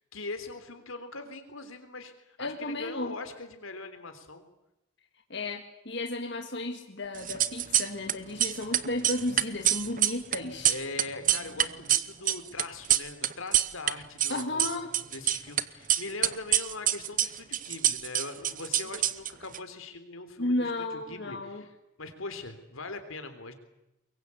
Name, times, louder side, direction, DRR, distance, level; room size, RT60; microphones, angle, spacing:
voice 1, 0.1-4.5 10.7-14.7 15.1-21.7 22.0-23.5, left 3 dB, 90° left, 8 dB, 3.6 m, -41 dB
voice 2, 2.4-3.2 5.3-10.7 14.3-14.9 20.4-21.6, left 2 dB, 55° left, 3 dB, 1.9 m, -33 dB
sound 1, 7.2-8.1 8.4-13.9 14.2-15.6 15.9-19.6, right 11 dB, 40° right, 0.9 m, -26 dB
23.5 x 22.5 x 8.5 m, 0.89 s
head